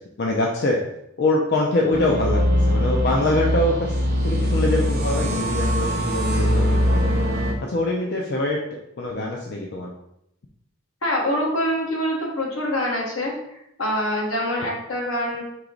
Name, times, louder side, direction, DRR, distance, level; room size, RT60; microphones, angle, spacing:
voice 1, 0.2-0.8 1.2-2.4 2.7-4.0 4.2-7.2 7.7-8.6 9.0-9.9, left 2 dB, 50° left, -1 dB, 0.5 m, -24 dB
sound 1, 1.9-7.5, equal, 50° right, 0.8 m, -21 dB
voice 2, 11.0-15.4, equal, 80° left, -2 dB, 1.3 m, -25 dB
4.7 x 2.9 x 3.8 m, 0.80 s
head